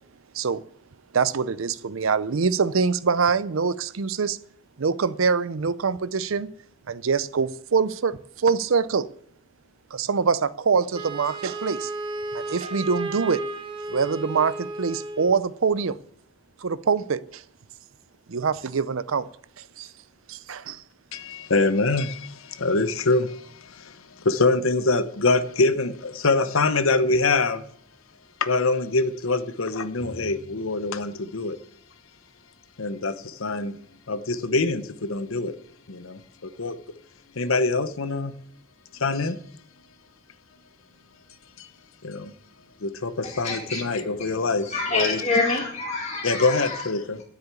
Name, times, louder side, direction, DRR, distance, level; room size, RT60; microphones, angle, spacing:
voice 1, 1.1-4.4 4.8-6.5 6.9-9.1 9.9-11.9 12.3-13.4 13.9-16.0 16.6-17.4 18.3-19.3 19.6-19.9 20.3-20.8, right 5 dB, 75° right, 0.6 m, -24 dB
Wind instrument woodwind instrument, 10.9-15.4, right 2 dB, 25° right, 1.1 m, -33 dB
voice 2, 21.1-27.6 28.4-31.6 32.8-33.8 34.1-35.6 35.9-36.8 37.4-38.3 38.9-39.4 41.6-41.7 42.0-42.3 42.8-45.2 46.2-47.2, left 3 dB, 75° left, 0.9 m, -24 dB
Drum, 30.0-32.4, left 1 dB, ahead, 2.8 m, -46 dB
voice 3, 43.2-44.3 44.6-46.8, left 3 dB, 30° left, 2.4 m, -27 dB
9.9 x 7.9 x 8.4 m
head